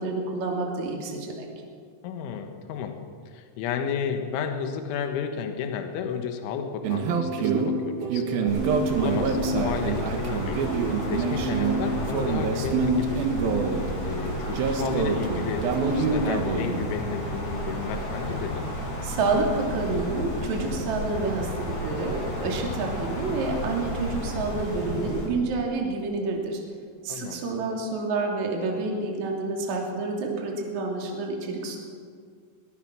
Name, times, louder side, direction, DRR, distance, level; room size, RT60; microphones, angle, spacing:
voice 1, 0.0-1.5 19.0-26.6 27.0-31.8, right 3 dB, 40° right, 0 dB, 3.8 m, -28 dB
voice 2, 2.0-3.0 3.3-10.7 11.1-13.4 14.0-18.7 24.8-25.3 27.1-27.4, left 7 dB, 80° left, 5 dB, 3.8 m, -32 dB
sound 1, 6.8-16.8, right 4 dB, 65° right, 2.7 m, -26 dB
Wind, 8.5-25.2, equal, 35° left, 7.4 m, -32 dB
22.0 x 20.0 x 6.2 m, 2.1 s
omnidirectional pair, 5.5 m